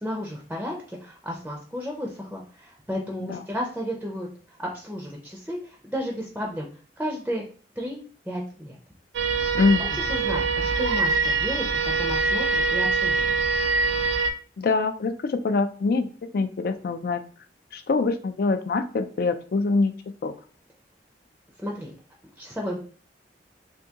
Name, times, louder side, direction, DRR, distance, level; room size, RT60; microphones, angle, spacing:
voice 1, 0.0-4.3 4.6-6.7 7.0-7.4 7.8-8.0 8.3-8.8 9.4-9.5 10.0-11.7 12.0-13.5 21.6-21.9 22.4-22.8, equal, 5° right, -2 dB, 0.5 m, -33 dB
sound 1, 9.1-14.3, right 4 dB, 85° right, 0.4 m, -24 dB
voice 2, 14.6-16.1 16.3-17.2 17.7-19.9 20.2-20.3, left 3 dB, 55° left, 9 dB, 0.4 m, -24 dB
3.5 x 2.7 x 2.8 m, 0.40 s
head